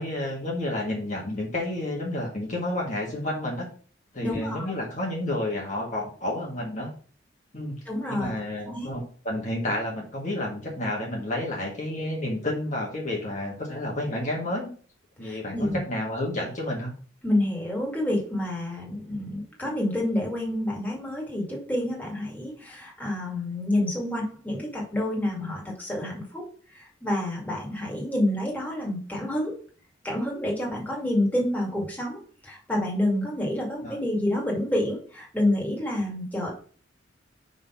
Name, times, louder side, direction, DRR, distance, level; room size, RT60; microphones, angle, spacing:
voice 1, 0.0-3.7 4.1-6.9 7.5-7.8 8.1-14.7 15.2-16.9 33.8-34.0, left 1 dB, 40° left, -2 dB, 1.8 m, -30 dB
voice 2, 4.2-4.7 7.9-8.3 8.7-8.9 15.2-15.8 17.2-26.4 26.7-29.6 30.0-36.5, left 1 dB, 10° left, -2 dB, 2.3 m, -28 dB
6.1 x 4.0 x 5.8 m, 0.43 s
head